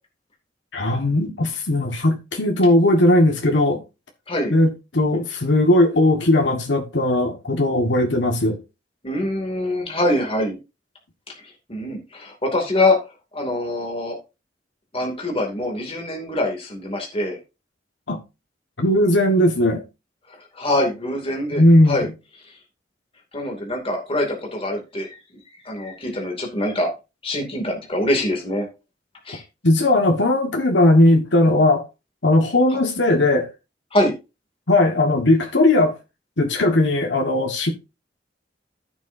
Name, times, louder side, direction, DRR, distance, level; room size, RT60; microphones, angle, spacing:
voice 1, 0.7-3.8 4.5-8.6 18.1-18.2 18.8-19.8 21.5-22.1 29.6-31.8 32.2-33.5 34.7-36.0 36.4-37.7, left 1 dB, 85° left, 1.5 m, -18 dB
voice 2, 9.0-10.6 11.7-13.0 13.3-14.2 14.9-17.4 20.5-22.1 23.3-25.2 25.6-26.9 27.2-28.7 29.2-29.4 33.9-34.1, left 1 dB, 30° left, 2.5 m, -24 dB
15.0 x 6.3 x 2.7 m
head